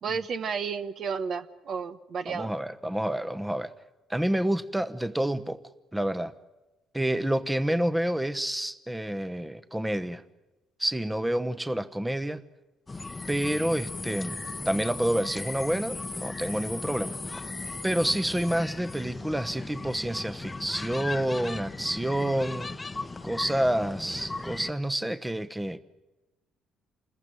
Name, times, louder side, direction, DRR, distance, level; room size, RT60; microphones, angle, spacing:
voice 1, 0.0-2.5, right 6 dB, 55° right, 12 dB, 1.0 m, -32 dB
voice 2, 2.3-3.7 4.1-5.6 5.9-6.3 6.9-10.2 10.8-12.4 13.3-14.4 14.6-17.2 17.8-22.7 23.2-25.8, right 1 dB, 10° right, 12 dB, 1.0 m, -28 dB
sound 1, 12.9-24.7, left 3 dB, 25° left, 0.9 m, -37 dB
28.0 x 15.0 x 9.0 m, 1.1 s
supercardioid pair, 65°, 0 cm